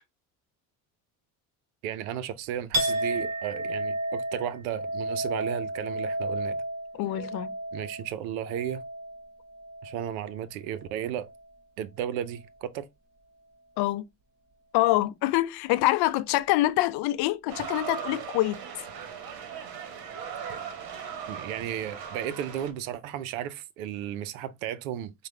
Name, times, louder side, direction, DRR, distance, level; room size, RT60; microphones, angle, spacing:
voice 1, 1.8-6.6 7.7-8.8 9.8-11.3 11.8-12.9 21.3-25.3, right 10 dB, 90° right, 0.6 m, -34 dB
Chink clink, 2.7-10.4 10.8-11.4, right 1 dB, 40° right, 1.6 m, -33 dB
voice 2, 6.9-7.5 13.8-14.0 14.7-18.6, left 17 dB, 65° left, 0.5 m, -25 dB
sound 1, 17.5-22.7, right 7 dB, 60° right, 1.2 m, -38 dB
4.8 x 2.2 x 3.2 m
supercardioid pair, 80°, 41 cm